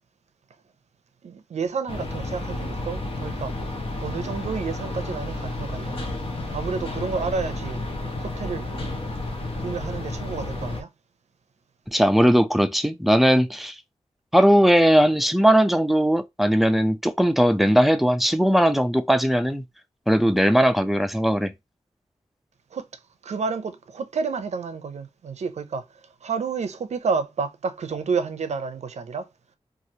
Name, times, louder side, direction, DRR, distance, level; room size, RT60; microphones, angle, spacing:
voice 1, 1.2-6.1 6.5-7.8 8.2-8.7 9.6-10.9 22.7-22.9 23.2-29.3, right 5 dB, 85° right, 0.5 m, -30 dB
sound 1, 1.9-10.8, left 2 dB, 55° left, 0.9 m, -31 dB
voice 2, 11.9-13.8 14.3-19.6 20.1-21.5, equal, ahead, 0.4 m, -19 dB
3.0 x 2.4 x 2.7 m
wide cardioid pair, 85°, 11 cm